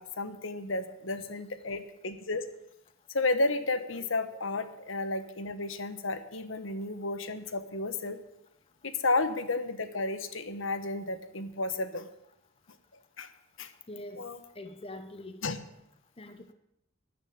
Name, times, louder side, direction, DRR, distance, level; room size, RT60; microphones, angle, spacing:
voice 1, 0.0-2.5 3.1-8.2 8.8-12.1 13.2-13.3 13.6-13.7 14.2-14.4 15.4-15.6, left 2 dB, 70° left, 11 dB, 1.3 m, -32 dB
voice 2, 13.9-14.2 14.6-15.4 16.2-16.5, left 1 dB, 25° left, 9 dB, 0.9 m, -43 dB
13.5 x 10.0 x 8.8 m, 0.83 s
head